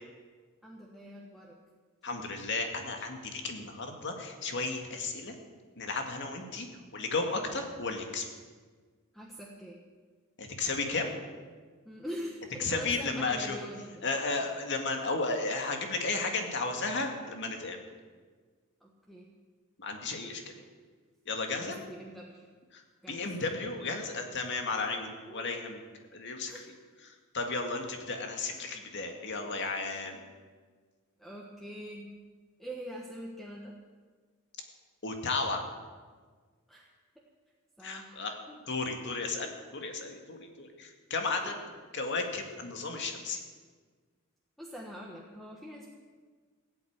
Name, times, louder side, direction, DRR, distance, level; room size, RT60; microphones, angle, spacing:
voice 1, 0.6-1.6 9.1-9.8 11.8-14.2 18.8-19.3 21.6-22.5 23.0-23.3 25.2-25.6 26.5-26.6 31.2-32.1 32.6-33.7 36.7-36.9 37.8-38.2 38.5-38.6 41.4-41.6 44.6-45.9, equal, ahead, -2 dB, 1.4 m, -44 dB
voice 2, 2.0-5.3 5.8-6.7 6.9-8.3 10.4-11.1 12.6-13.6 14.0-17.8 19.8-20.4 21.3-21.8 22.7-22.8 23.1-25.8 26.1-26.7 27.1-30.2 35.0-35.6 37.8-38.3 38.7-41.5 41.9-43.4, left 3 dB, 55° left, 3 dB, 2.1 m, -34 dB
16.5 x 8.4 x 8.9 m, 1.5 s
head